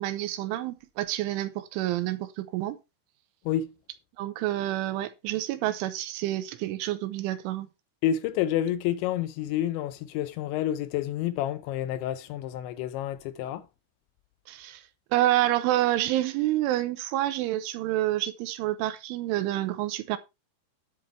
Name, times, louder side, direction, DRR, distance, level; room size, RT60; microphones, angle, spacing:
voice 1, 0.0-2.8 4.2-7.7 14.5-14.8 15.1-20.2, right 14 dB, 80° right, 3.2 m, -28 dB
voice 2, 8.0-13.6, left 11 dB, 80° left, 2.7 m, -29 dB
11.5 x 7.2 x 4.4 m
omnidirectional pair, 5.7 m